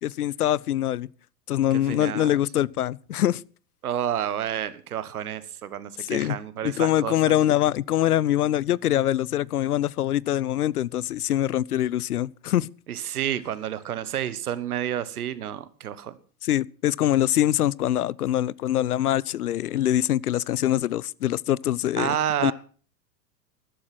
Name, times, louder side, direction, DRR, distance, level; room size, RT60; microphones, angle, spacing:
voice 1, 0.0-1.1 1.5-3.4 6.0-6.4 6.6-12.7 16.4-22.5, left 12 dB, 65° left, 0.6 m, -24 dB
voice 2, 1.9-2.4 3.8-7.1 12.9-16.2 22.0-22.5, right 10 dB, 60° right, 1.5 m, -29 dB
13.5 x 12.0 x 6.1 m
figure-of-eight pair, 95°, 49 cm